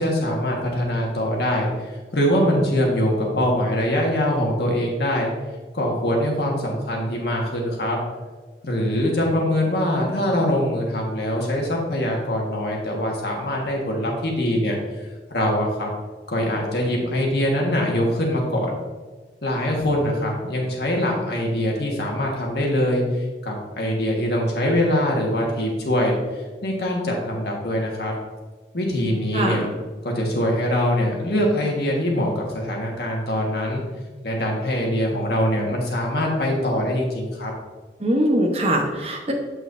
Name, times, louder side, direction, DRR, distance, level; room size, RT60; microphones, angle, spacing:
voice 1, 0.0-5.3 5.7-8.0 8.6-14.8 15.3-15.9 16.3-18.7 19.4-28.1 28.7-29.7 30.0-33.8 34.2-37.5, equal, 70° left, -1 dB, 1.5 m, -23 dB
voice 2, 29.3-29.7 38.0-39.3, right 1 dB, 35° right, 0 dB, 0.9 m, -22 dB
7.7 x 6.2 x 2.6 m, 1.3 s
head